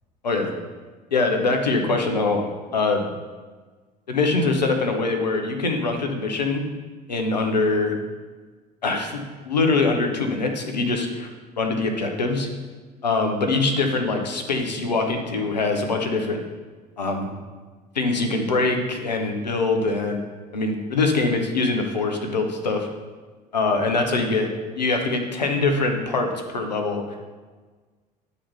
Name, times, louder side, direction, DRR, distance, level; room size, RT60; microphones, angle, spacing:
voice 1, 1.1-3.1 4.1-6.6 7.1-7.9 8.8-11.3 11.6-12.5 13.0-16.4 17.0-17.3 17.9-20.2 20.5-22.9 23.5-24.5 24.8-27.0, left 3 dB, 85° left, 4 dB, 0.9 m, -23 dB
9.9 x 4.1 x 5.4 m, 1.4 s
figure-of-eight pair, 60°, 21 cm